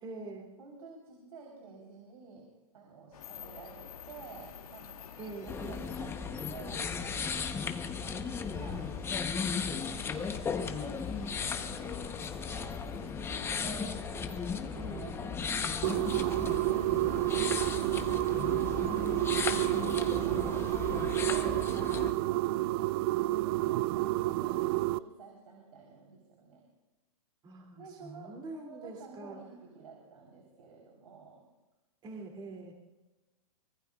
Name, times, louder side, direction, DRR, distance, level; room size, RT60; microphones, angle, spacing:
voice 1, 0.0-0.5 5.2-5.9 14.7-15.3 27.4-29.4 32.0-32.7, right 3 dB, 25° right, 0 dB, 2.8 m, -44 dB
voice 2, 0.6-2.5 2.7-7.4 7.7-12.8 13.3-16.4 17.1-18.1 18.8-26.6 27.8-31.4, right 5 dB, 75° right, 0 dB, 4.1 m, -51 dB
sound 1, 3.1-21.7, left 8 dB, 75° left, 1.4 m, -51 dB
sound 2, 5.5-22.1, left 6 dB, 15° left, 1.0 m, -36 dB
sound 3, 15.8-25.0, right 18 dB, 40° right, 0.4 m, -30 dB
24.5 x 22.0 x 2.4 m, 1.1 s
hypercardioid pair, 130°, 19 cm